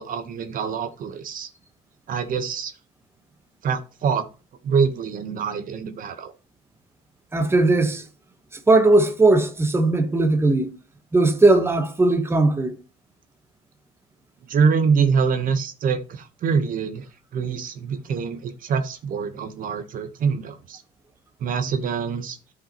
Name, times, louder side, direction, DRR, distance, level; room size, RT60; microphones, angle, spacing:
voice 1, 0.0-1.5 2.1-2.7 3.6-4.3 4.6-6.3 14.5-17.1 17.3-20.8 21.4-22.4, right 6 dB, 55° right, 0.9 m, -24 dB
voice 2, 7.3-8.0 8.5-10.7 11.1-12.8, right 2 dB, 15° right, 1.0 m, -18 dB
12.5 x 5.1 x 2.9 m
cardioid pair, 110°, 17 cm